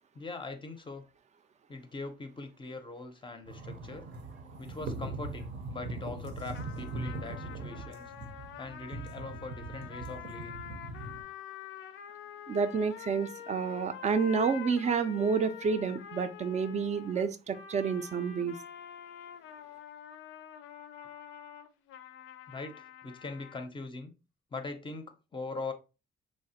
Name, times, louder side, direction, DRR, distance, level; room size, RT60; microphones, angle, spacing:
voice 1, 0.1-1.1 1.7-4.1 4.6-8.1 8.6-10.6 13.6-13.7 22.5-24.1 24.5-25.7, left 3 dB, 25° left, 0.5 m, -42 dB
sound 1, 3.5-11.2, right 2 dB, 65° right, 0.7 m, -41 dB
sound 2, 6.5-23.7, left 9 dB, 80° left, 0.4 m, -47 dB
voice 2, 12.5-18.6, right 5 dB, 35° right, 0.4 m, -29 dB
3.1 x 2.0 x 2.7 m
cardioid pair, 90°, 20 cm